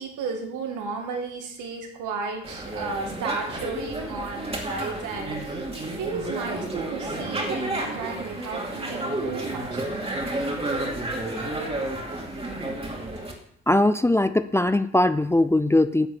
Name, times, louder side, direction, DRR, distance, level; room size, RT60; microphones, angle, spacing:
voice 1, 0.0-9.8, right 4 dB, 85° right, 2 dB, 2.2 m, -33 dB
sound 1, 2.4-13.3, right 1 dB, 20° right, 2.5 m, -31 dB
voice 2, 13.7-16.1, left 1 dB, 10° left, 12 dB, 0.4 m, -20 dB
10.5 x 4.9 x 8.1 m, 0.68 s
cardioid pair, 90°, 30 cm